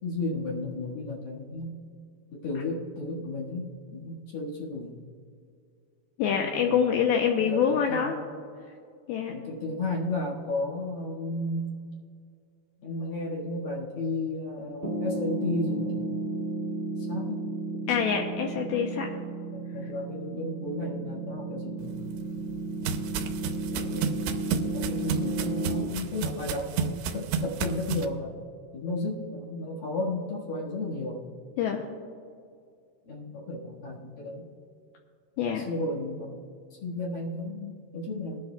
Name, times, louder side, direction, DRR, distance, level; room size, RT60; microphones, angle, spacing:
voice 1, 0.0-1.7 2.3-4.9 6.7-6.9 7.4-8.1 9.3-11.7 12.8-15.9 17.1-17.4 19.5-21.9 23.7-24.4 24.7-28.4 28.7-31.3 33.1-34.5 35.5-36.4 36.8-38.4, left 2 dB, 60° left, -3 dB, 3.1 m, -33 dB
voice 2, 6.2-8.2 9.1-9.4 17.9-19.1 31.6-31.9 35.4-35.7, left 7 dB, 80° left, 2 dB, 2.3 m, -25 dB
Piano, 14.8-25.8, right 2 dB, 20° left, 1.9 m, -33 dB
sound 1, 21.9-28.1, right 6 dB, 85° right, 2.8 m, -32 dB
21.0 x 10.5 x 2.3 m, 2.3 s
omnidirectional pair, 5.0 m